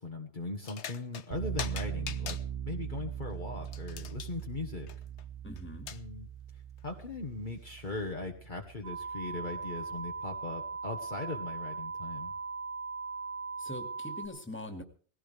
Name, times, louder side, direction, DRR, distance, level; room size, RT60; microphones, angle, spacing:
voice 1, 0.0-2.4 2.6-4.9 5.9-6.3 6.5-12.3, left 3 dB, 45° left, 1 dB, 1.6 m, -39 dB
sound 1, 0.6-1.3 1.6-2.4 3.6-4.4 4.9-5.2 5.6-5.7 5.9-6.0 6.8-6.9 7.7-7.8, left 8 dB, 75° left, 1.1 m, -42 dB
sound 2, 1.3-10.2, right 10 dB, 75° right, 3.2 m, -41 dB
voice 2, 5.4-5.9 13.6-14.8, left 1 dB, 10° left, 3 dB, 2.3 m, -42 dB
sound 3, 8.8-14.3, right 4 dB, 40° right, 3.5 m, -39 dB
20.0 x 16.0 x 3.5 m, 0.44 s
omnidirectional pair, 1.2 m